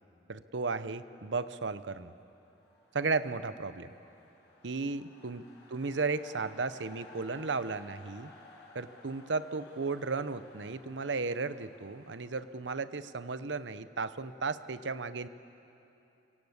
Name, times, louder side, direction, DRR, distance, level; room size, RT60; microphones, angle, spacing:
voice 1, 0.3-2.1 2.9-3.9 4.6-5.4 5.7-8.3 8.7-15.3, right 4 dB, 80° right, 13 dB, 0.8 m, -34 dB
sound 1, 2.0-13.8, left 2 dB, 65° left, 6.2 m, -57 dB
24.5 x 24.5 x 8.2 m, 2.9 s
head